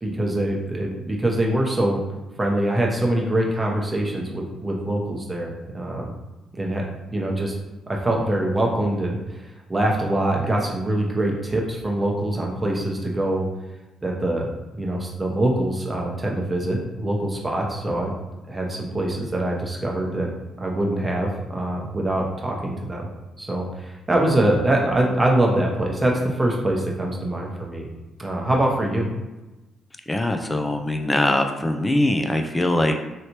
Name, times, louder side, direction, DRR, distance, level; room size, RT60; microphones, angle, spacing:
voice 1, 0.0-2.0 2.4-6.1 6.6-6.8 7.1-7.5 7.9-9.4 9.7-13.5 14.0-18.1 18.5-20.3 20.6-23.1 23.4-27.9 28.2-29.1, right 1 dB, 15° right, -1 dB, 0.8 m, -24 dB
voice 2, 30.1-33.0, left 1 dB, 15° left, 5 dB, 0.3 m, -22 dB
3.2 x 2.8 x 2.9 m, 1.1 s
cardioid pair, 90°, 0 cm